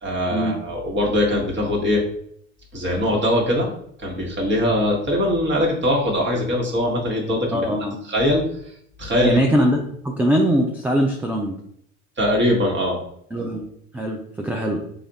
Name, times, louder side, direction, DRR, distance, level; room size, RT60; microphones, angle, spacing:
voice 1, 0.0-2.0 2.7-3.7 4.0-7.6 8.1-8.4 9.0-9.4 12.2-13.0, left 1 dB, 30° right, -1 dB, 1.3 m, -21 dB
voice 2, 7.5-8.0 9.2-11.6 13.3-13.6 13.9-14.8, equal, 5° right, 1 dB, 0.3 m, -21 dB
3.4 x 2.4 x 4.0 m, 0.69 s
supercardioid pair, 95°, 37 cm